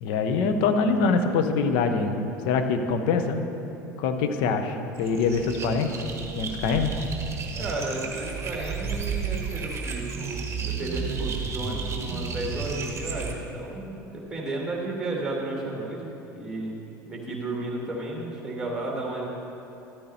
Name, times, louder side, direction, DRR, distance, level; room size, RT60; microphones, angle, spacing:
voice 1, 0.0-3.5 4.0-6.0 6.3-6.9, left 4 dB, 50° left, 7 dB, 0.8 m, -24 dB
sound 1, 5.0-13.3, right 5 dB, 25° right, 1.3 m, -32 dB
voice 2, 7.6-16.8 17.0-19.3, right 2 dB, 5° right, -2 dB, 2.2 m, -33 dB
13.0 x 13.0 x 2.8 m, 3.0 s
figure-of-eight pair, 70°, 10 cm